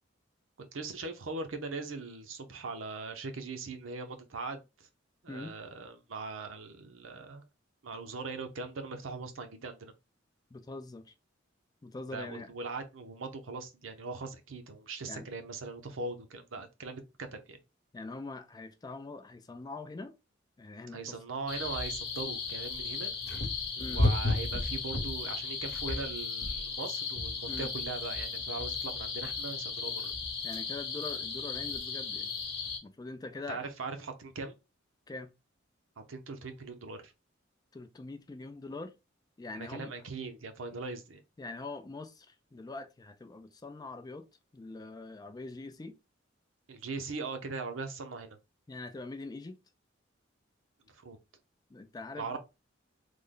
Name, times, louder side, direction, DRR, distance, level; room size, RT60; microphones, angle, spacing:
voice 1, 0.6-4.9 5.2-7.4 7.8-9.9 12.1-17.6 20.9-23.1 23.8-30.1 33.5-34.6 36.0-37.1 39.5-41.2 46.7-48.4 50.9-51.2 52.2-52.4, right 3 dB, 80° right, 0.7 m, -40 dB
voice 2, 10.5-11.1 11.8-12.5 15.1-15.3 17.9-20.1 20.6-21.2 23.8-24.0 27.5-27.7 30.4-32.3 32.8-33.7 35.1-35.3 37.7-38.9 39.4-39.9 41.4-44.3 44.5-45.9 48.7-49.6 51.7-52.4, left 3 dB, 20° left, 0.3 m, -43 dB
sound 1, 21.5-32.8, left 3 dB, 55° left, 1.1 m, -34 dB
3.3 x 2.1 x 3.7 m
head